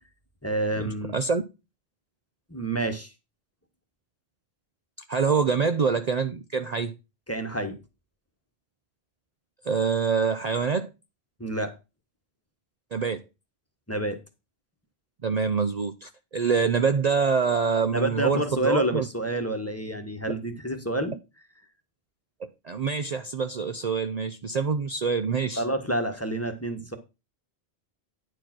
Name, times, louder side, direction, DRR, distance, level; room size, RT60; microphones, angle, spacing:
voice 1, 0.4-1.1 2.5-3.1 7.3-7.8 11.4-11.7 13.9-14.2 17.9-21.2 25.6-27.0, right 1 dB, 15° left, 1.2 m, -28 dB
voice 2, 1.1-1.4 5.1-6.9 9.7-10.9 12.9-13.2 15.2-19.0 22.6-25.6, right 5 dB, 45° right, 0.7 m, -25 dB
9.8 x 4.7 x 6.0 m
omnidirectional pair, 1.1 m